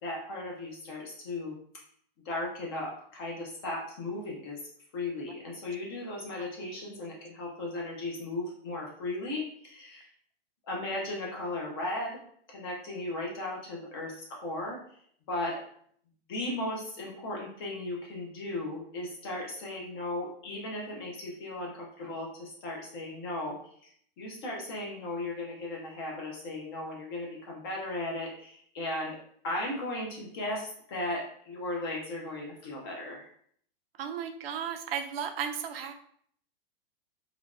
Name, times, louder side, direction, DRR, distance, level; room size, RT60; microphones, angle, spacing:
voice 1, 0.0-1.6 2.2-4.6 4.9-10.1 10.7-12.2 12.5-14.8 15.3-15.6 16.3-23.9 24.2-29.2 29.4-33.3, left 2 dB, 25° left, -1 dB, 0.4 m, -36 dB
voice 2, 34.0-35.9, right 8 dB, 70° right, 6 dB, 0.5 m, -34 dB
3.3 x 2.2 x 2.4 m, 0.62 s
hypercardioid pair, 160°, 31 cm